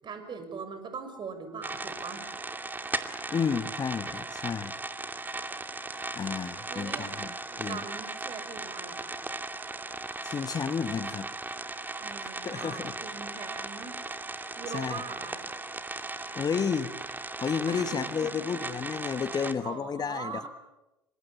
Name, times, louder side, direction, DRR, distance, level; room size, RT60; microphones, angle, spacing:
voice 1, 0.0-2.2 6.7-7.2 7.5-9.2 12.0-14.0 14.6-15.4 17.7-18.3 19.3-20.5, right 5 dB, 40° right, 8 dB, 5.7 m, -41 dB
sound 1, 1.6-19.5, right 3 dB, 15° right, 2.4 m, -37 dB
voice 2, 3.3-4.7 6.1-7.3 7.6-7.8 10.2-11.3 12.2-12.9 14.7-15.0 16.3-16.9 17.4-20.5, left 6 dB, 35° left, 11 dB, 1.5 m, -31 dB
27.5 x 25.5 x 7.1 m, 0.97 s
hypercardioid pair, 65°, 12 cm